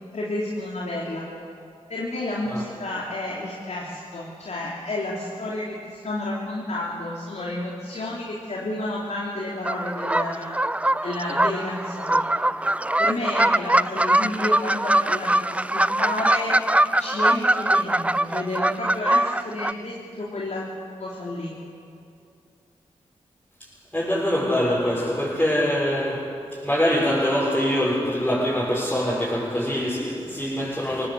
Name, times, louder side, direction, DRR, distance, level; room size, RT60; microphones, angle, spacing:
voice 1, 0.1-1.3 1.9-10.5 11.0-12.3 13.0-16.6 17.0-20.7 21.0-21.5, left 2 dB, 65° left, 3.5 m, -31 dB
sound 1, 9.7-19.7, right 1 dB, 10° right, 0.4 m, -22 dB
voice 2, 23.9-31.1, equal, 10° left, 7.0 m, -24 dB
22.5 x 18.5 x 8.2 m
cardioid pair, 45°, 13 cm